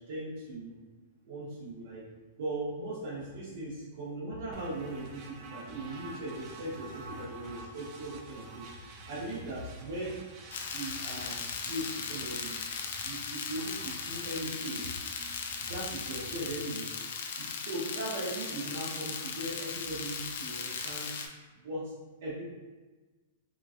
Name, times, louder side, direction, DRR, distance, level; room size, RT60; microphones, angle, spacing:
voice 1, 0.1-0.8 1.2-2.0 2.4-10.2 10.7-12.6 13.0-14.8 15.7-17.0 17.3-21.1 21.5-21.9 22.2-22.4, right 1 dB, 65° right, -8 dB, 0.8 m, -39 dB
sound 1, 4.5-16.6, right 2 dB, 35° right, 0.4 m, -48 dB
sound 2, 10.5-21.3, left 5 dB, 70° left, 0.3 m, -38 dB
2.9 x 2.4 x 2.5 m, 1.3 s
hypercardioid pair, 140°, 0 cm